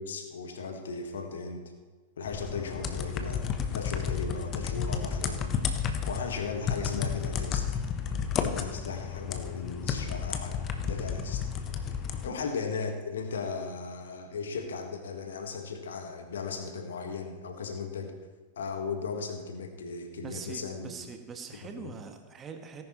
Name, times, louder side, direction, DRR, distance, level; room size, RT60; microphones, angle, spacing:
voice 1, 0.0-1.6 2.2-3.5 3.7-5.4 6.1-7.7 8.1-11.4 12.2-18.1 18.6-20.9 21.8-21.9, left 4 dB, 65° left, 5 dB, 1.6 m, -37 dB
sound 1, 2.3-12.3, left 7 dB, 30° left, 1.0 m, -32 dB
voice 2, 20.2-22.8, right 5 dB, 20° right, 5 dB, 1.5 m, -43 dB
18.0 x 10.5 x 3.2 m, 1.3 s
figure-of-eight pair, 95°, 0 cm